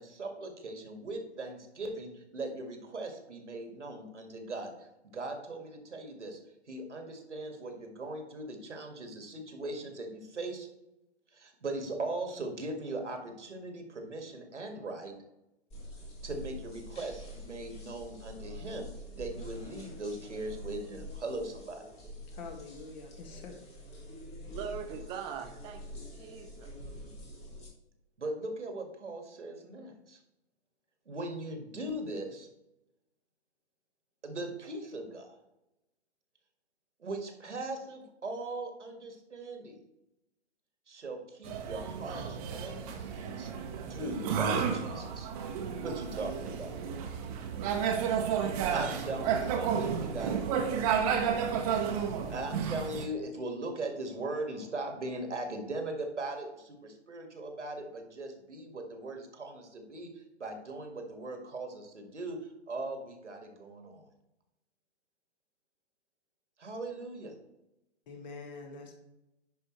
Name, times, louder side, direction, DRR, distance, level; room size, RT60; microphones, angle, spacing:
voice 1, 0.0-4.9 5.1-6.4 6.7-10.7 11.3-15.1 16.2-18.9 19.2-21.8 28.2-30.2 31.1-32.5 34.2-35.3 37.0-39.8 40.9-42.2 42.5-43.5 43.9-45.3 45.8-46.7 48.7-50.9 52.3-62.4 62.7-64.1 66.6-67.3, right 2 dB, 85° right, 4 dB, 1.9 m, -39 dB
sound 1, 15.7-27.7, left 1 dB, 20° left, 1.6 m, -46 dB
voice 2, 22.2-23.6 68.1-68.9, left 4 dB, 40° left, 2 dB, 1.9 m, -45 dB
voice 3, 24.5-26.7, right 7 dB, 15° right, 6 dB, 0.5 m, -41 dB
sound 2, 41.4-53.0, right 7 dB, 30° right, 1.0 m, -32 dB
10.0 x 5.3 x 3.1 m, 0.91 s
hypercardioid pair, 130°, 34 cm